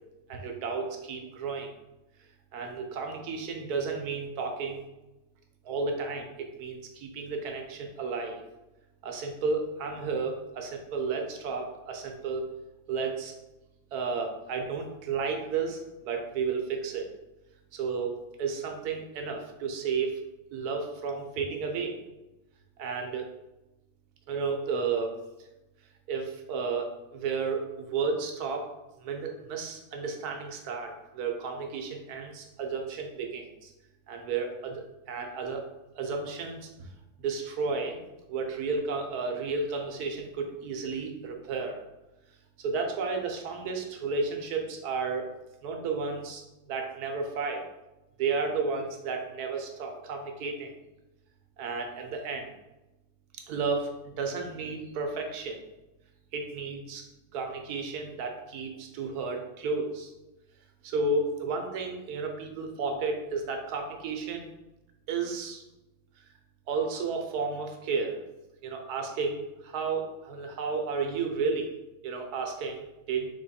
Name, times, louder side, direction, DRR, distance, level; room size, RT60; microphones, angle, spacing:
voice 1, 0.3-1.7 2.5-4.8 5.6-8.4 9.0-12.5 12.9-13.3 13.9-17.1 17.7-20.2 20.5-22.0 22.8-23.3 24.3-25.2 26.1-28.7 29.0-33.7 34.1-35.7 36.0-36.9 37.2-38.0 38.3-41.8 42.6-45.3 45.6-47.6 48.2-50.7 51.6-52.5 53.5-55.6 56.3-57.0 57.3-60.1 60.8-64.5 65.1-65.6 66.7-68.2 68.6-71.7 72.0-73.3, right 4 dB, 70° right, 3 dB, 1.2 m, -32 dB
3.8 x 3.0 x 4.2 m, 1.0 s
omnidirectional pair, 1.8 m